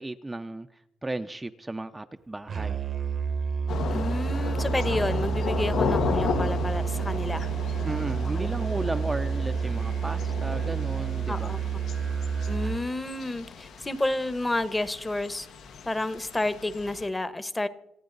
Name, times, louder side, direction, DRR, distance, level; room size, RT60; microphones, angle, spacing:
voice 1, 0.0-2.8 7.8-11.6, right 2 dB, 15° right, 0.6 m, -34 dB
Musical instrument, 2.5-12.9, right 6 dB, 50° right, 0.9 m, -29 dB
Thunder / Rain, 3.7-17.1, left 6 dB, 75° left, 1.4 m, -34 dB
voice 2, 3.9-7.5 8.2-8.5 11.3-11.6 12.5-15.5 15.8-17.7, left 2 dB, 15° left, 1.1 m, -30 dB
27.0 x 9.4 x 4.0 m
cardioid pair, 90°, 0 cm